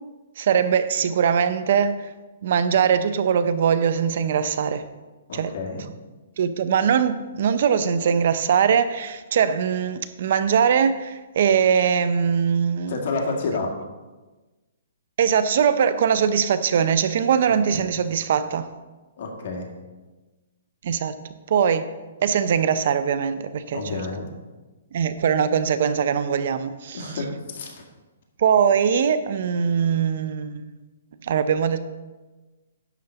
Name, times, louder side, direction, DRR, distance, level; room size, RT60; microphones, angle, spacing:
voice 1, 0.4-1.9 2.4-4.9 5.3-5.5 6.4-12.9 15.2-18.7 20.8-21.2 21.5-21.9 22.2-23.8 24.9-27.0 28.4-30.7 31.2-31.8, right 7 dB, 55° right, 0.5 m, -21 dB
voice 2, 5.3-5.8 12.9-13.7 17.5-17.9 19.2-19.7 23.7-24.2 26.9-27.8, left 3 dB, 55° left, 1.9 m, -30 dB
11.0 x 3.8 x 6.9 m
hypercardioid pair, 160°, 0 cm